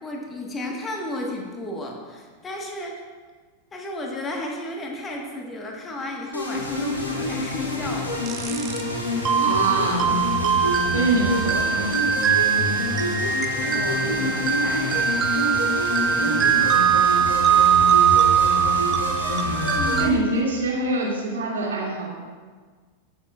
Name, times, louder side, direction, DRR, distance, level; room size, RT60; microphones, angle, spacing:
voice 1, 0.0-3.0 3.7-8.1 13.2-15.3 19.7-20.4, left 1 dB, 20° left, 0 dB, 1.3 m, -33 dB
sound 1, 6.3-20.0, left 1 dB, 80° left, 1.9 m, -27 dB
sound 2, 8.3-8.8 9.2-20.1, right 8 dB, 25° right, 0.5 m, -21 dB
voice 2, 9.4-10.2 10.9-12.3 16.1-16.7 20.0-22.1, right 2 dB, 65° right, -3 dB, 2.1 m, -25 dB
14.0 x 6.9 x 2.3 m, 1.5 s
figure-of-eight pair, 90°, 0 cm